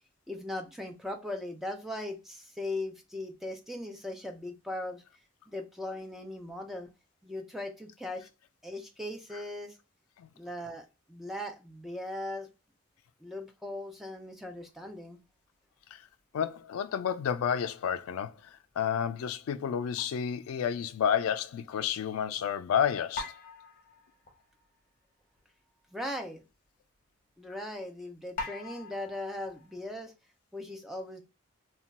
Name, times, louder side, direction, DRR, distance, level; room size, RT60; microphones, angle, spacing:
voice 1, 0.3-5.0 5.5-6.9 7.2-8.3 8.6-9.8 10.4-12.5 13.2-15.2 25.9-26.4 27.4-30.1 30.5-31.2, left 1 dB, ahead, 0.3 m, -39 dB
voice 2, 16.3-23.3, left 8 dB, 90° left, 0.3 m, -30 dB
sound 1, 20.0-20.5 21.1-21.2 23.1-24.9 25.3-25.4 25.7-25.8 26.5-26.6 28.4-30.0, left 3 dB, 40° left, 0.6 m, -43 dB
2.3 x 2.1 x 3.9 m
head